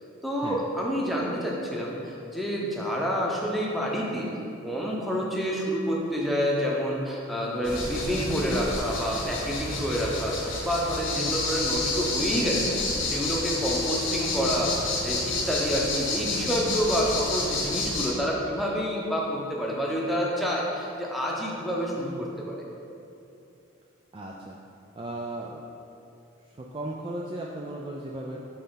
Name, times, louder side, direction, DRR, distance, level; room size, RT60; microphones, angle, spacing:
voice 1, 0.2-4.3 4.6-22.6, equal, ahead, -3 dB, 0.8 m, -28 dB
Valece komische Grillen zirpen, 7.6-18.1, left 2 dB, 90° left, 1.3 m, -30 dB
voice 2, 24.1-24.6 24.9-25.7 26.4-28.5, right 1 dB, 25° right, -2 dB, 0.3 m, -36 dB
5.5 x 4.1 x 5.7 m, 2.7 s
head